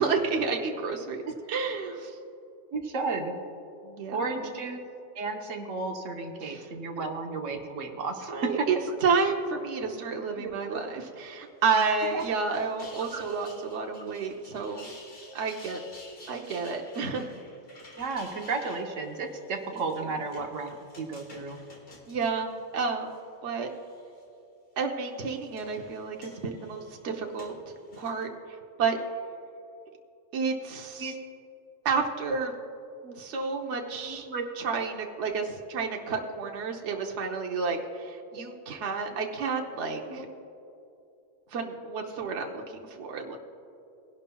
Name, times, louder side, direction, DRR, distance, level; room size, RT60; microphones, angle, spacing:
voice 1, 0.0-1.2 1.5-2.2 3.8-4.5 6.4-6.7 8.3-14.9 15.3-15.8 16.3-17.3 22.1-23.2 23.4-23.7 24.8-27.5 28.0-29.0 30.3-31.1 31.8-32.5 33.2-34.3 34.6-40.3 41.5-43.4, right 5 dB, 70° right, 2 dB, 1.2 m, -30 dB
voice 2, 2.7-3.4 4.1-4.8 5.2-8.7 9.8-9.9 10.4-10.8 12.1-12.2 13.1-13.2 18.0-21.6 31.0-31.1 33.0-33.1 34.0-34.4 38.3-38.4 40.1-40.2, right 3 dB, 85° right, 3 dB, 1.4 m, -33 dB
sound 1, 11.4-23.2 23.6-24.2 25.0-28.2, left 2 dB, 50° left, 1.9 m, -52 dB
21.0 x 11.0 x 2.3 m, 2.7 s
omnidirectional pair, 1.3 m